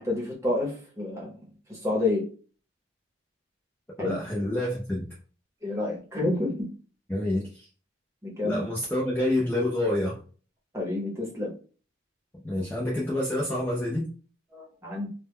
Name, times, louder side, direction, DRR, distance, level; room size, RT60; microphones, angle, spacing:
voice 1, 0.0-1.4 1.7-2.2 4.0-4.2 5.6-6.7 8.2-8.6 10.7-11.5 14.5-15.1, left 2 dB, 15° right, -3 dB, 0.8 m, -29 dB
voice 2, 4.0-5.1 7.1-7.7 8.4-10.2 12.4-14.1, left 1 dB, 10° left, -5 dB, 0.4 m, -28 dB
2.1 x 2.1 x 3.4 m, 0.39 s
head